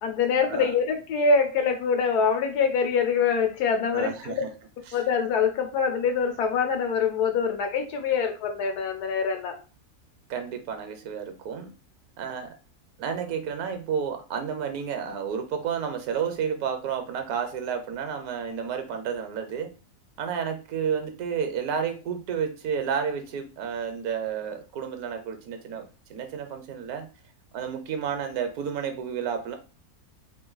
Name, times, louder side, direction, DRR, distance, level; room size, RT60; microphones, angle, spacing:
voice 1, 0.0-4.4 4.9-9.5, left 5 dB, 80° left, 4 dB, 1.3 m, -24 dB
voice 2, 3.9-4.5 4.9-5.0 10.3-11.7 12.2-12.5 13.0-19.7 20.2-27.1 27.5-29.5, right 7 dB, 70° right, 7 dB, 1.1 m, -31 dB
3.2 x 2.6 x 3.8 m, 0.33 s
omnidirectional pair, 1.7 m